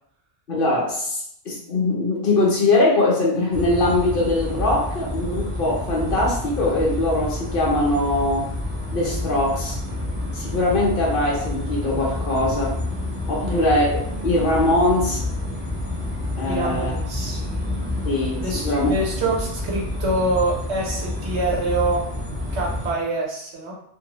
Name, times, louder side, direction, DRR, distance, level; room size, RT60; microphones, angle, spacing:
voice 1, 0.5-8.5 8.9-9.8 10.3-12.8 13.3-15.2 16.4-16.9 18.0-18.9, left 2 dB, 55° left, -3 dB, 0.8 m, -22 dB
sound 1, 3.5-22.9, left 1 dB, 10° right, 0.8 m, -29 dB
voice 2, 16.5-17.4 18.4-22.1 22.5-23.7, right 2 dB, 70° right, -3 dB, 1.2 m, -25 dB
2.8 x 2.6 x 2.9 m, 0.68 s
omnidirectional pair, 1.2 m